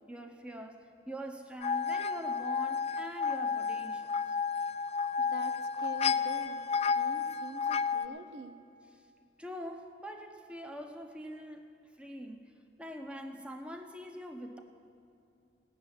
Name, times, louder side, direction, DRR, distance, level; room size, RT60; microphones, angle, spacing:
voice 1, 0.0-4.4 8.9-9.0 9.4-12.4 12.8-14.6, equal, 5° right, 4 dB, 0.9 m, -44 dB
sound 1, 1.6-8.1, left 5 dB, 35° left, 0.3 m, -31 dB
voice 2, 5.2-6.6 6.9-8.5, right 3 dB, 70° right, 7 dB, 0.9 m, -45 dB
17.5 x 6.9 x 9.7 m, 2.4 s
head